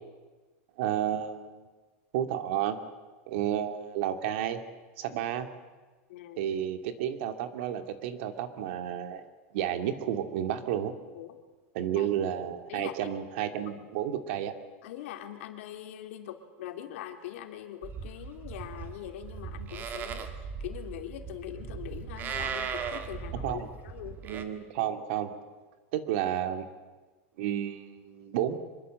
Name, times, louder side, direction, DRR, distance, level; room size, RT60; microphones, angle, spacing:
voice 1, 0.8-1.7 2.1-2.8 3.3-4.6 5.0-5.5 6.4-9.2 9.5-10.9 11.7-14.5 23.4-23.7 24.2-25.3 25.9-26.7 27.4-28.6, right 10 dB, 55° right, 8 dB, 2.4 m, -31 dB
voice 2, 6.1-6.4 11.1-11.4 12.0-12.1 12.7-13.1 14.8-24.2, left 11 dB, 65° left, 5 dB, 3.1 m, -42 dB
Livestock farm animals working animals, 17.8-24.4, right 6 dB, 25° right, 2.0 m, -38 dB
25.5 x 22.5 x 7.8 m, 1.3 s
supercardioid pair, 165°, 7 cm